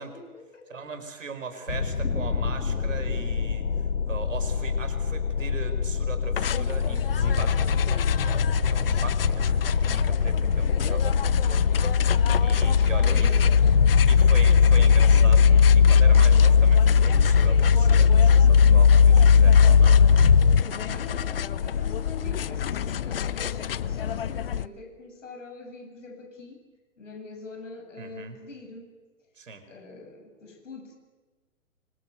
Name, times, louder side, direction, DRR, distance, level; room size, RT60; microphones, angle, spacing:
voice 1, 0.0-0.8 13.0-13.8 20.7-26.7 27.0-29.0 29.6-31.0, left 3 dB, 55° left, 4 dB, 7.5 m, -44 dB
voice 2, 0.7-3.7 4.0-13.5 14.1-20.3 20.6-20.7 28.0-28.4 29.4-29.6, right 4 dB, 60° right, 8 dB, 5.0 m, -40 dB
sound 1, 1.7-20.6, left 6 dB, 80° left, 1.1 m, -19 dB
sound 2, 6.4-24.7, left 9 dB, 40° left, 0.8 m, -31 dB
26.0 x 25.5 x 8.3 m, 1.3 s
figure-of-eight pair, 125°, 43 cm